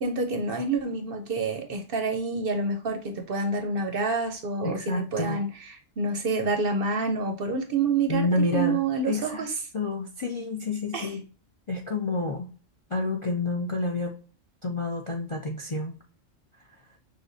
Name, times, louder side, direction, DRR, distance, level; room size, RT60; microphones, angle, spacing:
voice 1, 0.0-9.5 10.9-11.2, right 3 dB, 55° right, 7 dB, 0.7 m, -28 dB
voice 2, 4.6-5.4 8.1-9.5 9.7-11.2 11.7-12.5 12.9-14.1 14.6-16.0, left 2 dB, 40° left, 1 dB, 0.4 m, -29 dB
6.5 x 2.2 x 2.6 m, 0.37 s
omnidirectional pair, 1.3 m